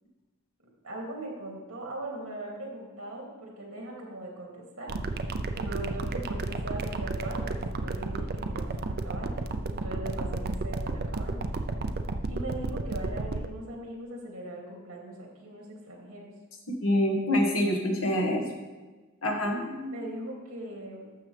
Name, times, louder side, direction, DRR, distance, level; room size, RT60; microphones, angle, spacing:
voice 1, 0.8-5.3 5.6-9.4 9.7-11.4 12.2-16.3 19.9-21.2, right 1 dB, 70° right, -2 dB, 2.5 m, -40 dB
sound 1, 4.9-13.5, right 3 dB, 45° right, 0.5 m, -32 dB
voice 2, 16.8-18.5 19.2-20.0, left 1 dB, 75° left, 1 dB, 1.6 m, -26 dB
12.0 x 7.2 x 3.4 m, 1.3 s
head